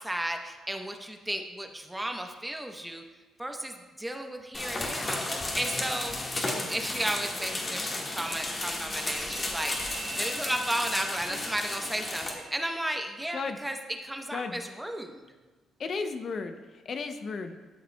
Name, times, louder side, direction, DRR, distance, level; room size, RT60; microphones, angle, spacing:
voice 1, 0.0-3.0 3.4-15.3, right 1 dB, 10° right, 4 dB, 0.8 m, -34 dB
sound 1, 4.5-12.3, left 2 dB, 30° left, 1.6 m, -33 dB
sound 2, 9.1-13.9, right 5 dB, 70° right, 2.2 m, -46 dB
voice 2, 15.8-17.6, left 4 dB, 50° left, 7 dB, 0.6 m, -34 dB
13.0 x 6.6 x 2.2 m, 1.3 s
cardioid pair, 90°, 0 cm